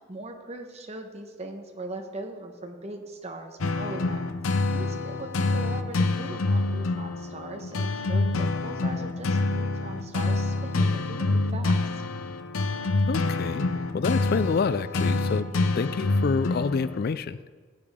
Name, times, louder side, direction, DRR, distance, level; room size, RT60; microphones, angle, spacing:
voice 1, 0.1-4.2 4.7-11.8, right 2 dB, 30° right, 3 dB, 1.1 m, -40 dB
sound 1, 3.6-17.1, left 2 dB, 80° left, 0.7 m, -27 dB
voice 2, 13.1-13.7 13.9-15.5 15.8-17.4, left 5 dB, 50° left, 15 dB, 0.3 m, -27 dB
16.5 x 8.7 x 3.6 m, 1.5 s
head